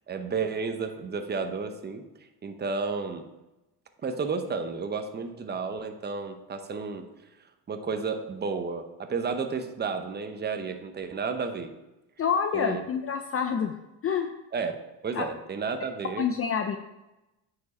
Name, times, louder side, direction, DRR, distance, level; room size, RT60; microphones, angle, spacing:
voice 1, 0.1-2.0 2.4-3.3 4.0-7.0 7.7-11.7 12.5-12.8 14.5-14.7 15.0-16.3, right 5 dB, 25° right, 7 dB, 0.8 m, -32 dB
voice 2, 12.2-13.7 14.0-14.3 15.1-15.3 16.2-16.8, left 7 dB, 35° left, 6 dB, 0.5 m, -27 dB
9.2 x 4.9 x 4.2 m, 0.97 s
cardioid pair, 100°, 42 cm